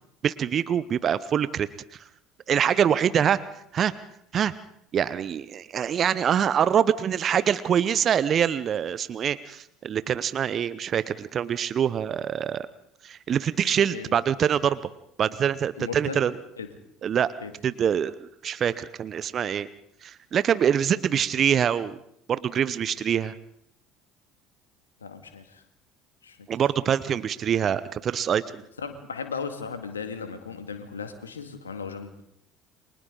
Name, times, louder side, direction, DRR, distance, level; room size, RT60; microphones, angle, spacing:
voice 1, 0.2-1.7 2.5-3.4 3.7-3.9 4.3-4.5 4.9-12.7 13.0-14.8 15.2-16.4 17.0-17.3 17.6-18.1 18.4-19.7 20.0-22.0 22.3-23.3 26.5-28.6, right 8 dB, 45° right, 16 dB, 0.9 m, -24 dB
voice 2, 15.8-16.2 16.6-16.7 17.4-17.5 25.0-25.6 26.2-26.5 28.8-32.2, left 5 dB, 85° left, 7 dB, 2.1 m, -36 dB
30.0 x 24.0 x 4.0 m, 0.71 s
hypercardioid pair, 60°, 0 cm